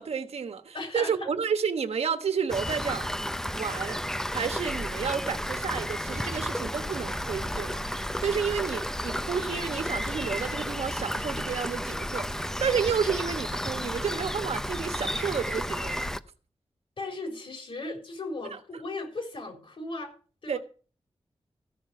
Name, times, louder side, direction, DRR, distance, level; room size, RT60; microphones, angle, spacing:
voice 1, 0.0-3.1 3.5-4.0 4.3-16.1 18.5-18.6 20.5-20.6, right 6 dB, 85° right, 1.2 m, -31 dB
voice 2, 0.7-1.3 9.0-9.2 17.0-20.1 20.4-20.6, left 2 dB, 60° left, 4.0 m, -37 dB
Rain, 2.5-16.2, equal, 5° left, 0.5 m, -32 dB
14.5 x 6.0 x 7.6 m
wide cardioid pair, 130°, 10 cm